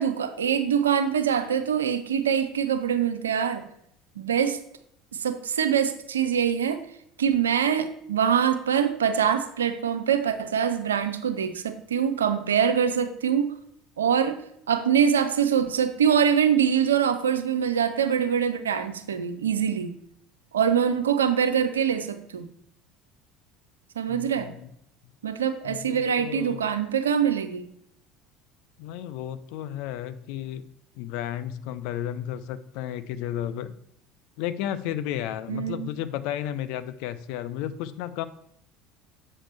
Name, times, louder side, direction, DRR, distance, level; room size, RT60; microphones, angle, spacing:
voice 1, 0.0-3.7 4.2-4.6 5.2-6.8 7.2-13.5 14.0-14.4 14.7-19.9 20.5-22.5 24.0-24.5 25.2-27.7 35.5-35.9, right 8 dB, 75° right, 10 dB, 0.5 m, -24 dB
voice 2, 24.1-24.7 25.6-26.6 28.8-30.6 30.9-33.7 34.4-38.3, left 11 dB, 60° left, 12 dB, 0.5 m, -33 dB
7.3 x 6.5 x 3.4 m, 0.72 s
figure-of-eight pair, 65°, 0 cm